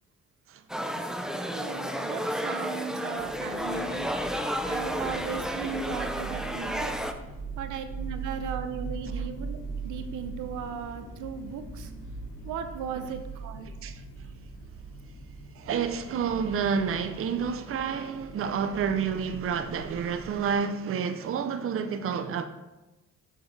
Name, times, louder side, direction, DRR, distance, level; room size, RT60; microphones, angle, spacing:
sound 1, 0.7-7.1, equal, ahead, 0.5 m, -32 dB
voice 1, 1.5-4.1 4.6-7.0 7.6-11.9 12.4-13.7, right 6 dB, 85° right, 0.7 m, -37 dB
sound 2, 3.2-20.6, right 4 dB, 90° left, 2.0 m, -41 dB
voice 2, 15.6-22.5, right 6 dB, 45° right, 0.6 m, -29 dB
6.8 x 6.5 x 3.3 m
cardioid pair, 90°, 30 cm